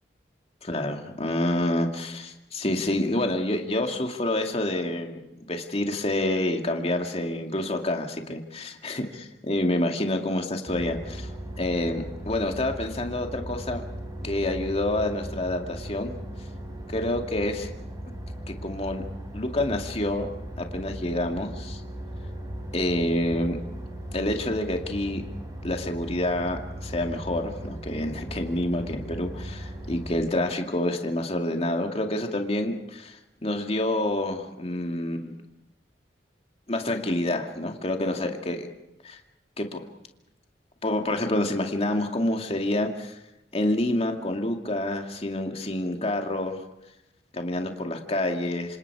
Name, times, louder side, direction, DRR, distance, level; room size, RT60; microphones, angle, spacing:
voice 1, 0.6-5.2 5.5-9.1 9.5-11.3 11.6-13.8 14.2-16.1 16.9-17.7 18.5-19.0 19.3-20.3 20.6-21.8 22.7-23.6 24.1-25.2 25.6-35.4 36.7-38.7 39.0-39.2 39.6-39.8 40.8-43.2 43.5-46.6 47.3-48.8, left 1 dB, 35° left, 3 dB, 2.4 m, -28 dB
sound 1, 10.7-30.2, equal, 20° right, 5.4 m, -38 dB
27.5 x 27.0 x 4.9 m, 0.89 s
head